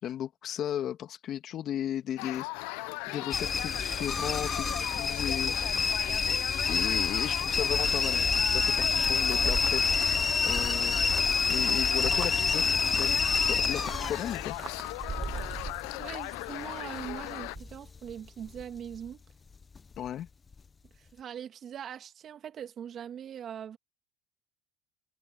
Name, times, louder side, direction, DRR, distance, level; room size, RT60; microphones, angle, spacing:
voice 1, 0.0-2.4 3.1-5.5 6.7-11.0 11.5-14.6 20.0-20.3, left 10 dB, 45° left, 2.4 m, -35 dB
sound 1, 2.2-17.6, left 24 dB, 70° left, 0.7 m, -38 dB
sound 2, 3.3-18.2 18.4-19.1 19.6-20.1 20.5-20.6, left 4 dB, 20° left, 0.9 m, -28 dB
sound 3, 6.5-16.5 16.8-17.7, right 5 dB, 25° right, 2.2 m, -41 dB
voice 2, 15.9-19.2 21.0-23.8, right 9 dB, 40° right, 2.2 m, -41 dB
supercardioid pair, 100°, 0 cm